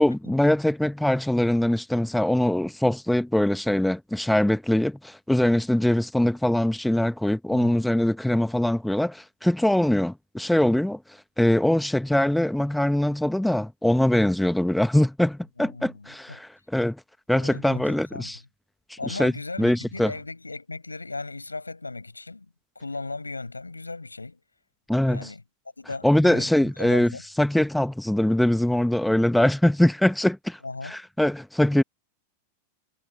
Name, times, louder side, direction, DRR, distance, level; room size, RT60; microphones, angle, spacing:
voice 1, 0.0-11.0 11.4-17.0 17.3-18.4 18.9-19.3 19.6-20.1 24.9-25.3 26.0-27.1 27.4-31.8, left 1 dB, 5° left, 1.3 m, -22 dB
voice 2, 15.6-16.4 17.3-18.3 19.0-22.5 22.8-24.4 25.1-25.4 25.8-27.2 30.6-30.9, left 3 dB, 80° left, 7.6 m, -37 dB
figure-of-eight pair, 90°, 0 cm